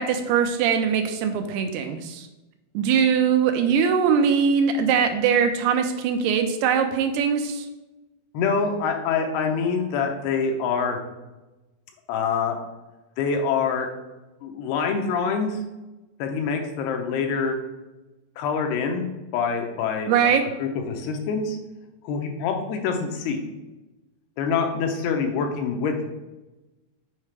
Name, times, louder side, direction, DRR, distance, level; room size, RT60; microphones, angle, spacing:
voice 1, 0.0-2.3 2.7-7.6 20.1-20.4, right 7 dB, 85° right, 6 dB, 2.6 m, -21 dB
voice 2, 8.3-11.0 12.1-12.6 13.2-13.9 14.4-15.6 16.2-17.6 18.4-20.3 20.6-21.6 22.0-23.4 24.4-26.0, left 5 dB, 80° left, 3 dB, 2.8 m, -25 dB
7.5 x 4.7 x 3.2 m, 1.1 s
omnidirectional pair, 4.6 m